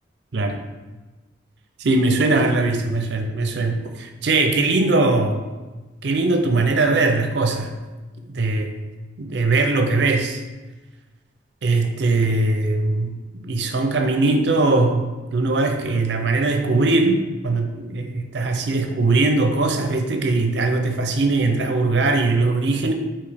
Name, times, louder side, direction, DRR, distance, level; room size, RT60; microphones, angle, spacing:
voice 1, 1.8-5.5 6.0-7.7 8.3-8.7 9.2-10.4 11.6-13.2 13.4-17.2 17.4-22.9, right 3 dB, 65° right, 5 dB, 0.5 m, -20 dB
4.8 x 2.8 x 3.4 m, 1.2 s
head